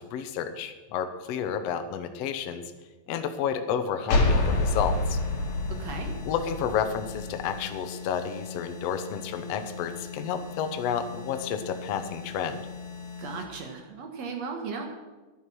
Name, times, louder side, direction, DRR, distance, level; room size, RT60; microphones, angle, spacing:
voice 1, 0.1-2.6 3.1-5.2 6.2-12.6, left 7 dB, 70° left, 8 dB, 1.6 m, -31 dB
sound 1, 4.1-7.6, left 2 dB, 50° left, 2.4 m, -27 dB
sound 2, 4.1-13.5, left 5 dB, 15° left, 1.7 m, -41 dB
voice 2, 5.8-6.1 13.2-14.9, right 5 dB, 60° right, 3 dB, 2.2 m, -36 dB
11.0 x 10.5 x 6.2 m, 1.2 s
omnidirectional pair, 3.9 m